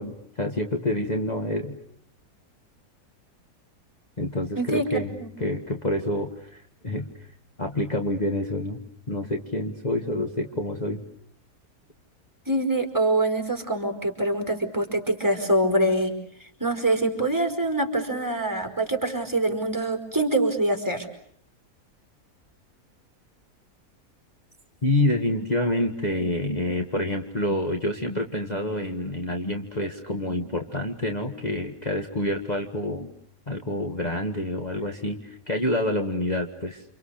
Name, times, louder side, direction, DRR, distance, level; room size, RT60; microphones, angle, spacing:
voice 1, 0.0-1.8 4.2-7.3 7.6-8.8 9.1-11.0 24.8-33.1 33.5-36.8, left 1 dB, 30° left, 3 dB, 2.0 m, -27 dB
voice 2, 4.6-5.3 12.5-16.1 16.4-21.1, right 1 dB, 10° right, 4 dB, 4.8 m, -25 dB
29.5 x 28.5 x 6.7 m, 0.63 s
omnidirectional pair, 1.6 m